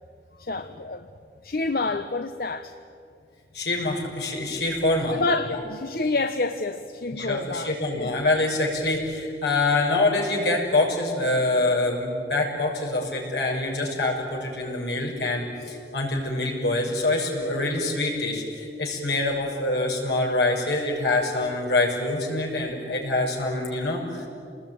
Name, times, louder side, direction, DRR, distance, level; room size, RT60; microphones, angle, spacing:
voice 1, 0.4-1.1 1.4-2.7 5.0-7.7 8.0-8.1, left 3 dB, 55° left, 8 dB, 0.9 m, -28 dB
voice 2, 3.5-5.2 5.5-5.6 7.1-24.3, left 2 dB, 75° left, 0 dB, 6.3 m, -25 dB
29.0 x 20.0 x 9.3 m, 2.4 s
head